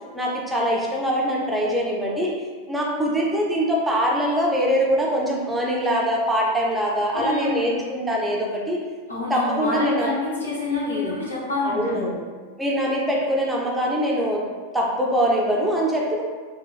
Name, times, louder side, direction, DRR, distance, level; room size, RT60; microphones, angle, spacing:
voice 1, 0.1-2.3 2.7-8.8 9.3-10.1 10.7-11.1 11.6-12.2 12.6-14.4 14.7-16.2, equal, 5° right, -3 dB, 0.4 m, -23 dB
voice 2, 7.1-7.8 9.1-12.1, left 3 dB, 80° left, -7 dB, 0.8 m, -27 dB
2.9 x 2.2 x 2.4 m, 1.5 s
figure-of-eight pair, 90°, 0 cm